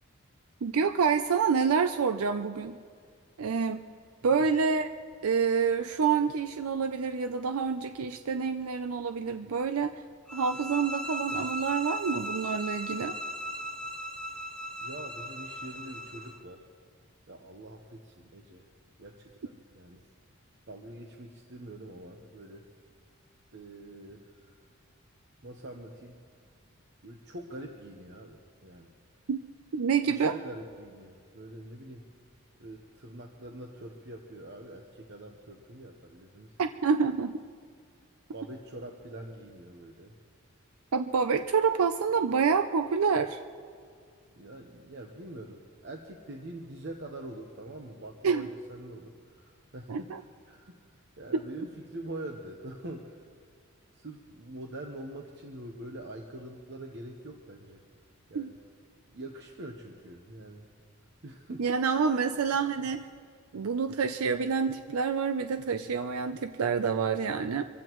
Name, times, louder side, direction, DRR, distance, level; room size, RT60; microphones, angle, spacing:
voice 1, 0.6-2.8 3.4-3.8 4.2-4.9 5.2-10.0 10.3-13.2 29.3-29.4 29.7-30.3 36.6-37.4 40.9-43.4 48.2-48.5 49.9-50.2 51.3-51.4 58.3-58.5 61.6-63.1 63.5-67.6, right 5 dB, 80° right, 9 dB, 0.5 m, -27 dB
sound 1, 10.3-16.4, equal, 5° left, 0.6 m, -37 dB
voice 2, 14.8-16.7 17.3-18.7 19.0-20.0 20.7-22.7 23.5-24.5 25.4-26.2 27.0-28.9 30.0-32.1 32.6-36.6 38.3-40.1 44.4-53.2 53.9-57.8 58.3-58.5 59.1-60.7 61.2-61.7 62.2-62.3 62.8-62.9, right 1 dB, 50° right, 2 dB, 1.0 m, -44 dB
25.0 x 15.5 x 3.1 m, 2.1 s
head